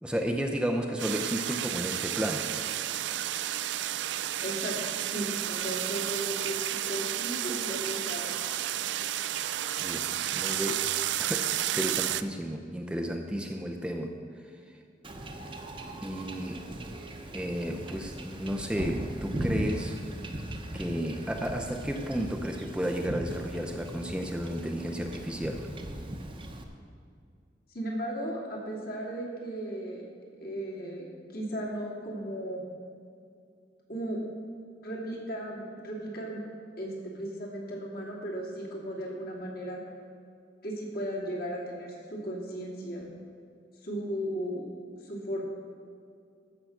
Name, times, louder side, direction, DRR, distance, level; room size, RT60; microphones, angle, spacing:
voice 1, 0.0-2.6 9.8-10.9 11.2-14.2 16.0-16.7 17.3-20.0 20.7-25.7, equal, 5° right, 2 dB, 0.5 m, -33 dB
sound 1, 1.0-12.2, right 12 dB, 80° right, 0.4 m, -31 dB
voice 2, 4.4-4.8 5.1-8.3 27.7-30.0 30.4-31.1 31.3-32.6 33.9-34.2 34.8-36.4 36.8-39.8 40.6-43.1 43.8-44.7 45.0-45.4, right 1 dB, 60° left, -3 dB, 2.7 m, -36 dB
Wind / Ocean / Boat Water vehicle, 15.0-26.6, right 1 dB, 30° right, 0.9 m, -38 dB
14.5 x 6.2 x 6.5 m, 2.3 s
head